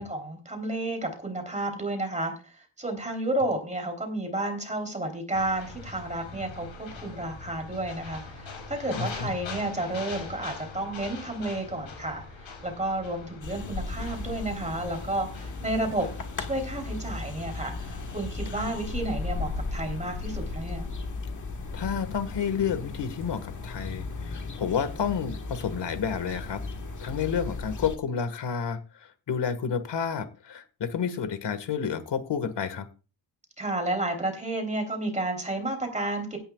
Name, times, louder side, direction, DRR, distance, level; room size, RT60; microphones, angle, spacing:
voice 1, 0.0-16.1 16.4-20.9 33.6-36.4, right 1 dB, 15° right, 4 dB, 3.5 m, -31 dB
sound 1, 5.3-20.6, left 4 dB, 85° left, 5.9 m, -43 dB
voice 2, 9.0-9.3 18.5-18.7 21.7-26.6 27.0-32.8, left 7 dB, 65° left, 11 dB, 1.8 m, -30 dB
sound 2, 13.4-28.0, left 3 dB, 40° left, 1.5 m, -36 dB
17.0 x 10.5 x 2.4 m, 0.34 s
wide cardioid pair, 170°, 45 cm